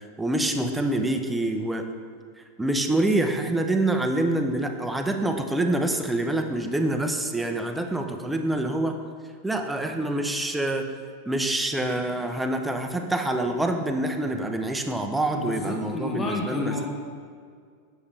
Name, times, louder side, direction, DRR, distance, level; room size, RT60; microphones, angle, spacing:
voice 1, 0.2-1.8 2.6-9.0 9.4-10.8 11.3-16.9, right 1 dB, 5° right, 4 dB, 0.6 m, -26 dB
voice 2, 15.3-16.9, left 2 dB, 25° left, 0 dB, 1.3 m, -30 dB
6.7 x 5.5 x 3.3 m, 2.1 s
hypercardioid pair, 95°, 0 cm